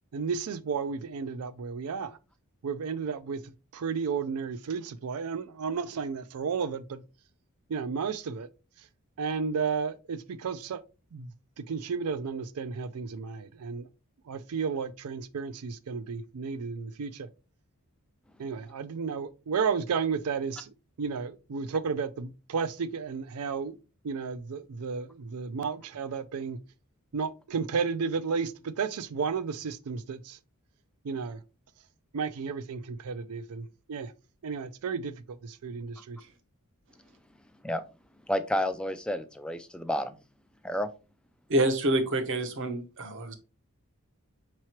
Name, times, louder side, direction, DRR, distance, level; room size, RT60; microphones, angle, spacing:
voice 1, 0.1-2.2 2.6-7.0 7.7-8.5 9.2-10.8 11.1-11.3 11.6-13.9 14.3-17.3 18.4-23.7 24.0-26.6 27.1-30.4 31.0-31.4 32.1-34.1 34.4-36.2, right 5 dB, 75° right, 0.4 m, -33 dB
voice 2, 38.3-40.1 40.6-40.9, left 1 dB, 5° left, 0.3 m, -30 dB
voice 3, 41.5-43.3, right 1 dB, 60° right, 0.8 m, -27 dB
5.6 x 3.0 x 2.9 m
head